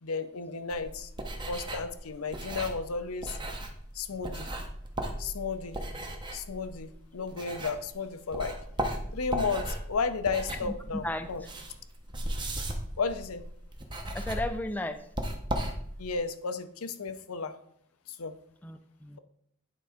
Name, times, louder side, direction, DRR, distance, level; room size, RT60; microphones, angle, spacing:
voice 1, 0.0-1.1 1.5-3.4 3.9-4.5 5.2-5.8 6.3-8.5 9.1-11.4 13.0-13.4 16.0-17.5 18.1-18.3, left 4 dB, 80° left, 10 dB, 0.7 m, -33 dB
sound 1, 0.7-8.0 8.3-16.2, right 1 dB, 20° right, 0.8 m, -36 dB
voice 2, 14.1-15.1 18.6-19.2, left 1 dB, 10° left, 8 dB, 0.3 m, -35 dB
9.4 x 3.8 x 4.9 m, 0.68 s
head